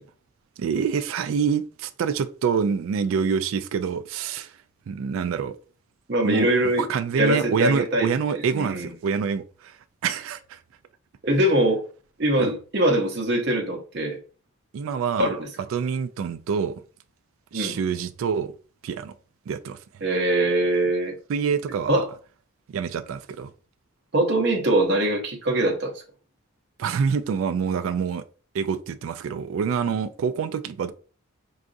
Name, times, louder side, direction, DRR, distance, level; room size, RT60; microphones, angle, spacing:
voice 1, 0.6-4.6 4.9-5.6 6.2-6.5 6.8-9.8 10.0-10.6 12.4-12.5 14.7-15.3 15.7-16.8 17.5-18.5 18.8-19.1 19.5-19.8 21.3-22.0 22.7-23.5 26.8-28.2 28.5-30.9, right 6 dB, 70° right, 0.3 m, -26 dB
voice 2, 6.1-6.9 7.1-8.9 11.2-11.8 12.2-14.2 15.2-15.5 17.5-17.8 20.0-21.1 21.9-22.1 24.1-26.0, right 1 dB, 55° right, 0.7 m, -23 dB
4.7 x 2.4 x 2.5 m
head